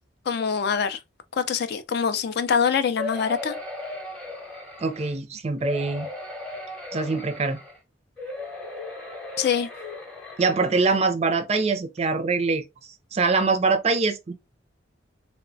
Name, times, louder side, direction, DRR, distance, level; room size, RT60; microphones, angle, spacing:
voice 1, 0.3-1.0 1.3-3.6 9.4-9.7, left 6 dB, 55° left, 0.3 m, -24 dB
sound 1, 3.0-5.1 5.6-7.8 8.2-11.0 11.6-11.7 12.0-12.1, left 2 dB, 5° left, 0.7 m, -37 dB
voice 2, 4.8-6.1 6.9-7.6 10.4-14.3, right 4 dB, 35° right, 0.4 m, -24 dB
3.0 x 2.1 x 2.6 m
head